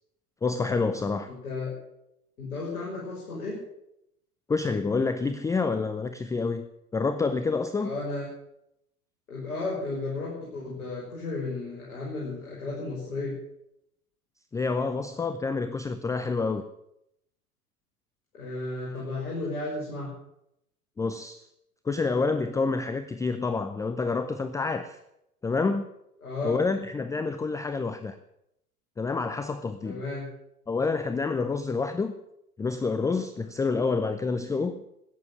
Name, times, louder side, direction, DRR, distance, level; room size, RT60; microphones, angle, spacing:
voice 1, 0.4-1.3 4.5-8.0 14.5-16.6 18.8-19.0 21.0-21.4 21.8-25.0 25.4-25.9 26.4-28.2 29.0-30.0 30.7-32.1 32.6-34.8, left 4 dB, 5° left, 10 dB, 0.5 m, -28 dB
voice 2, 1.3-1.7 2.4-3.6 7.8-8.2 9.3-13.4 18.3-20.1 26.2-26.6 29.8-30.3, left 3 dB, 70° left, -4 dB, 6.1 m, -33 dB
14.0 x 9.6 x 9.4 m, 0.80 s
figure-of-eight pair, 90°, 45 cm